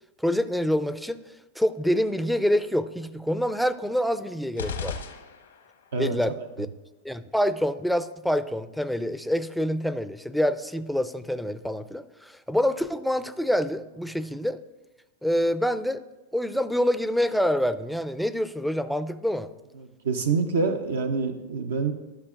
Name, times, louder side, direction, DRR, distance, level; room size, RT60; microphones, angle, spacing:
voice 1, 0.2-1.2 1.6-5.0 6.0-6.7 7.0-14.6 15.2-16.0 16.3-19.5, equal, ahead, 12 dB, 0.4 m, -26 dB
sound 1, 4.6-5.9, left 5 dB, 90° left, 0.9 m, -35 dB
voice 2, 5.9-6.5 19.8-21.9, right 4 dB, 80° right, 5 dB, 0.6 m, -27 dB
13.0 x 6.1 x 2.4 m, 1.1 s
hypercardioid pair, 110°, 0 cm